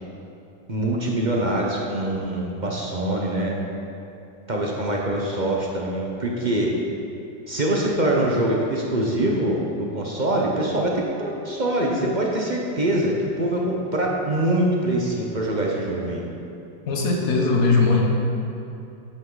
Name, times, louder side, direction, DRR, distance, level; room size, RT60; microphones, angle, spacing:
voice 1, 0.7-3.5 4.5-6.7 7.5-9.6 9.9-16.2, right 1 dB, 30° right, -2 dB, 0.9 m, -24 dB
voice 2, 16.9-18.0, left 3 dB, 55° left, 0 dB, 1.6 m, -19 dB
10.5 x 8.8 x 4.0 m, 2.8 s
omnidirectional pair, 1.9 m